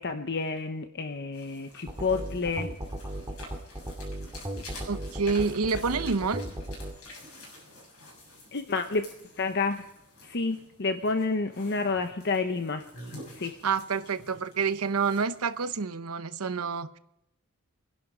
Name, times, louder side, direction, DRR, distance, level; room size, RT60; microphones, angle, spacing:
voice 1, 0.0-2.7 8.5-9.0 9.4-9.8 10.2-12.9 13.3-13.6, left 4 dB, 50° left, 0.9 m, -29 dB
sound 1, 1.3-15.8, left 1 dB, 80° left, 7.3 m, -49 dB
sound 2, 1.9-6.9, right 1 dB, 20° right, 1.9 m, -36 dB
voice 2, 4.9-6.4 13.6-17.0, right 5 dB, 85° right, 0.8 m, -28 dB
24.0 x 11.0 x 5.0 m
head